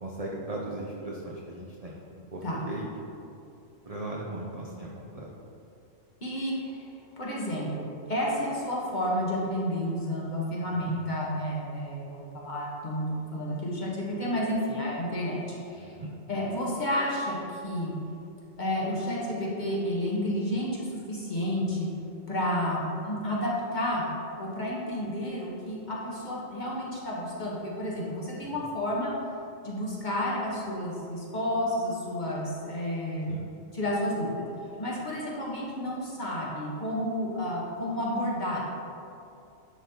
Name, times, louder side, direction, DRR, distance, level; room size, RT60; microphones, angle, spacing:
voice 1, 0.0-2.9 3.8-5.3 10.7-10.9 15.8-16.1 33.3-33.4, right 2 dB, 45° right, -3 dB, 0.5 m, -38 dB
voice 2, 6.2-6.8 7.2-15.9 16.3-17.9 18.6-21.9 22.3-24.1 24.4-29.1 29.6-33.3 33.7-34.4 34.8-38.6, equal, 40° left, -5 dB, 1.2 m, -31 dB
10.5 x 4.0 x 2.8 m, 2.7 s
omnidirectional pair, 1.3 m